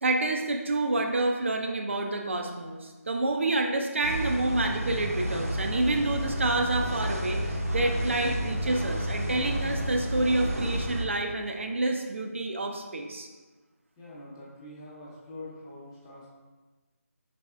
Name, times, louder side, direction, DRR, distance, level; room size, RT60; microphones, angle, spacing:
voice 1, 0.0-13.3, right 2 dB, 55° right, 3 dB, 0.5 m, -28 dB
sound 1, 4.0-11.1, equal, 75° right, 0.8 m, -31 dB
voice 2, 14.0-16.3, left 1 dB, 15° left, -7 dB, 0.9 m, -44 dB
5.3 x 4.1 x 2.4 m, 1.3 s
figure-of-eight pair, 155°, 8 cm